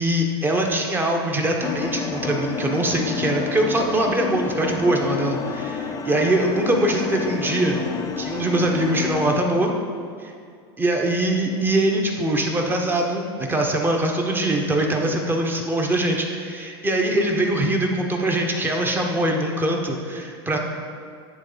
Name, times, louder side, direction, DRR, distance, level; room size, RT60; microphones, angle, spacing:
voice 1, 0.0-7.8 8.2-9.7 10.2-10.3 10.8-20.6, right 1 dB, 15° right, 1 dB, 1.1 m, -22 dB
sound 1, 1.6-9.4, left 6 dB, 25° left, 0.6 m, -30 dB
9.7 x 3.7 x 5.2 m, 2.3 s
hypercardioid pair, 105°, 13 cm